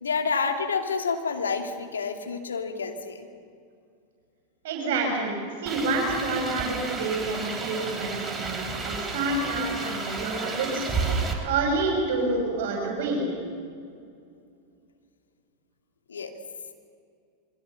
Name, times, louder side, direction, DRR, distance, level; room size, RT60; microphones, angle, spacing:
voice 1, 0.0-3.3 16.1-16.3, left 5 dB, 70° left, 5 dB, 2.6 m, -29 dB
voice 2, 4.6-10.8 11.4-13.3, right 3 dB, 55° right, 1 dB, 5.9 m, -28 dB
sound 1, 5.7-11.3, right 4 dB, 15° right, 4.2 m, -32 dB
28.0 x 23.0 x 7.1 m, 2.3 s
figure-of-eight pair, 90°, 0 cm